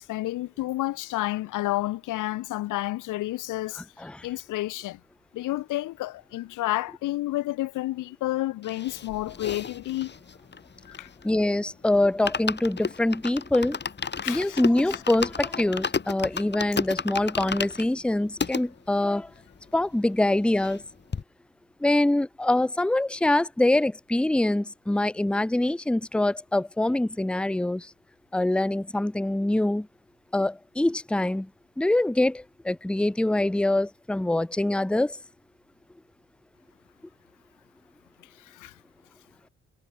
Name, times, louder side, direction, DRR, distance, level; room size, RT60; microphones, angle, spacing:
voice 1, 0.0-3.8 4.2-5.0 5.3-10.1 10.9-11.1 14.2-14.6 14.9-15.0 38.4-38.7, left 16 dB, 85° left, 1.2 m, -30 dB
voice 2, 3.8-4.3 11.2-13.8 14.3-19.3 19.7-20.8 21.8-27.9 28.3-29.9 30.3-31.5 31.8-35.2, left 1 dB, 5° left, 0.8 m, -24 dB
sound 1, 8.6-11.4 11.7-11.8 12.1-18.6 19.2-19.3 19.5-19.6 19.9-20.8 21.1-21.2, left 5 dB, 35° left, 5.0 m, -33 dB
cardioid pair, 90°, 30 cm